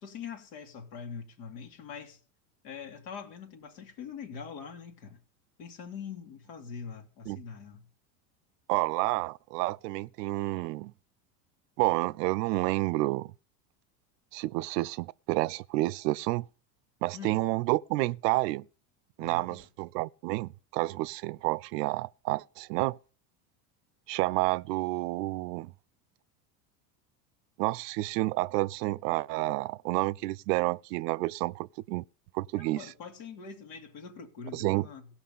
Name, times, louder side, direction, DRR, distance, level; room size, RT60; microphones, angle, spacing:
voice 1, 0.0-2.2 2.6-5.2 5.6-7.9 17.1-17.4 19.2-19.7 32.6-35.1, left 6 dB, 80° left, 2.5 m, -43 dB
voice 2, 8.7-10.9 11.8-13.3 14.3-16.5 17.0-18.6 19.2-23.0 24.1-25.7 27.6-32.0 32.3-32.9 34.5-34.9, right 20 dB, 80° right, 0.6 m, -30 dB
16.5 x 6.0 x 5.5 m
supercardioid pair, 110°, 47 cm